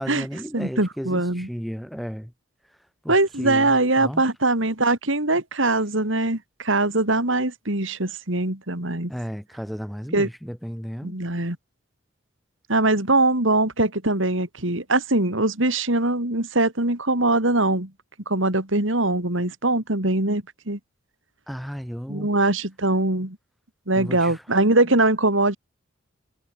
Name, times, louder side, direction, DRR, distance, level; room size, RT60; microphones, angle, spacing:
voice 1, 0.0-2.3 3.0-4.2 9.1-11.2 21.5-22.3 24.0-24.4, equal, ahead, 4.8 m, -34 dB
voice 2, 0.5-1.5 3.1-9.1 10.1-10.3 11.0-11.6 12.7-17.9 18.3-20.8 22.1-23.4 23.9-25.6, right 2 dB, 75° right, 4.0 m, -22 dB
head